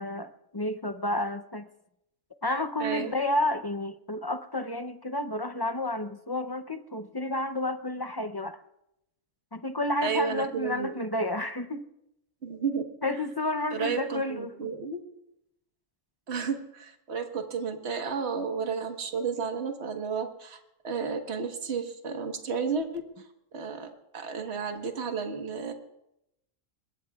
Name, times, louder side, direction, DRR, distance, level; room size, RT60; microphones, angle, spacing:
voice 1, 0.0-1.7 2.4-8.6 9.5-11.9 13.0-14.5, left 1 dB, 25° left, 9 dB, 0.5 m, -31 dB
voice 2, 2.8-3.1 10.0-10.9 12.4-12.8 13.7-15.0 16.3-23.0 23.5-25.7, right 5 dB, 55° right, 4 dB, 1.6 m, -32 dB
26.0 x 22.0 x 2.4 m, 0.84 s
omnidirectional pair, 1.4 m